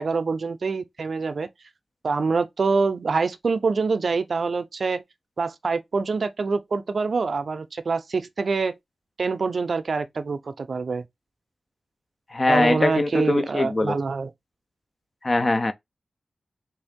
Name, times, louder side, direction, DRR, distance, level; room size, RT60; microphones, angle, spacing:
voice 1, 0.0-1.5 2.0-5.0 5.4-8.7 9.2-11.1 12.5-14.3, right 4 dB, 65° right, 0.5 m, -25 dB
voice 2, 12.3-14.0 15.2-15.7, left 2 dB, 35° left, 0.5 m, -22 dB
3.4 x 2.6 x 3.6 m
wide cardioid pair, 90°, 0 cm